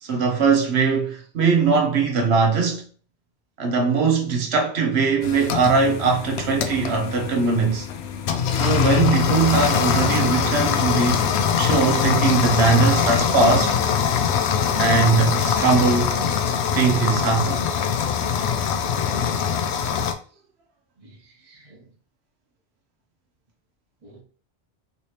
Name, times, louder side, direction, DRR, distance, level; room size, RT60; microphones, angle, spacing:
voice 1, 0.0-2.8 3.6-7.9 8.5-11.3 11.5-13.8 14.8-16.2 16.7-17.6, right 4 dB, 85° right, 1.1 m, -20 dB
sound 1, 5.2-20.1, left 7 dB, 90° left, 0.8 m, -23 dB
voice 2, 21.0-21.9 24.0-24.2, right 2 dB, 35° right, 0.9 m, -51 dB
3.3 x 2.8 x 3.1 m
omnidirectional pair, 1.1 m